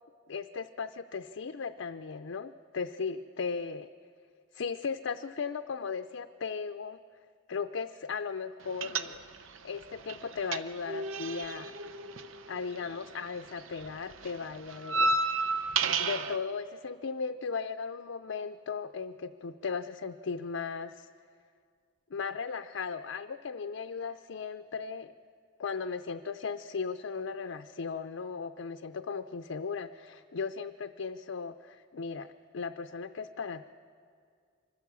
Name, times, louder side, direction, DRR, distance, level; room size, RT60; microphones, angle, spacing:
voice 1, 0.3-3.9 4.5-7.0 7.5-9.2 9.6-11.8 12.5-15.2 16.0-21.1 22.1-25.1 25.6-33.7, left 5 dB, 70° left, 8 dB, 0.5 m, -37 dB
sound 1, 8.8-9.6 9.8-13.2 13.5-16.4, right 3 dB, 85° right, 0.8 m, -31 dB
24.5 x 15.5 x 6.9 m, 2.2 s
head